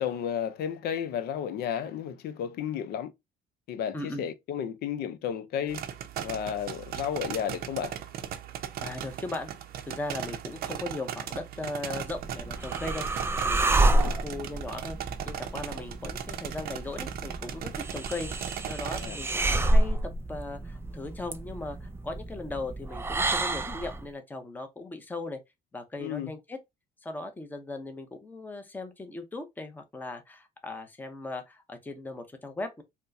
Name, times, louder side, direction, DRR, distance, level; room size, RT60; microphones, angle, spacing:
voice 1, 0.0-3.1 3.7-5.8 6.2-7.9 13.9-14.1 19.0-19.2 26.0-26.3, left 9 dB, 70° left, 0.6 m, -32 dB
voice 2, 3.9-4.2 8.8-9.5 9.8-13.1 13.4-15.0 15.3-25.4 25.7-26.6 27.0-32.8, left 2 dB, 10° left, 0.7 m, -38 dB
sound 1, 5.7-19.1, right 10 dB, 65° right, 0.6 m, -38 dB
sound 2, 12.0-24.0, right 2 dB, 15° right, 0.4 m, -29 dB
4.3 x 2.1 x 2.6 m
cardioid pair, 110°, 17 cm